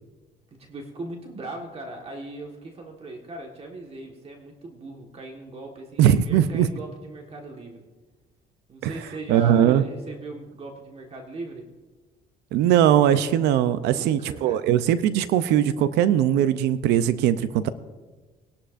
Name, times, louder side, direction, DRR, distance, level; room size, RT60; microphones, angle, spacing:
voice 1, 0.5-7.9 8.7-11.7 13.8-14.7, right 2 dB, 35° right, 2 dB, 1.5 m, -39 dB
voice 2, 6.0-6.7 9.3-9.8 12.5-17.7, right 10 dB, 85° right, 14 dB, 0.6 m, -20 dB
20.0 x 11.5 x 2.6 m, 1.3 s
cardioid pair, 110°, 17 cm